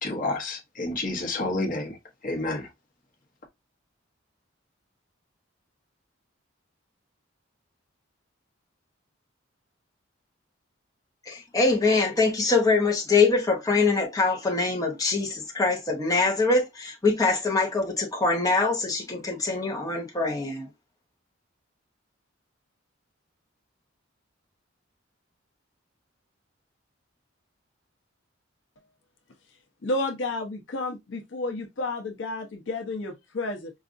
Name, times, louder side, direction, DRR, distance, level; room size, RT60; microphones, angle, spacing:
voice 1, 0.0-2.0 2.2-2.7, left 2 dB, 45° left, 1.0 m, -29 dB
voice 2, 11.3-20.7, left 3 dB, 20° left, 0.8 m, -24 dB
voice 3, 29.8-33.7, left 2 dB, 65° left, 0.7 m, -31 dB
4.8 x 2.4 x 2.5 m
head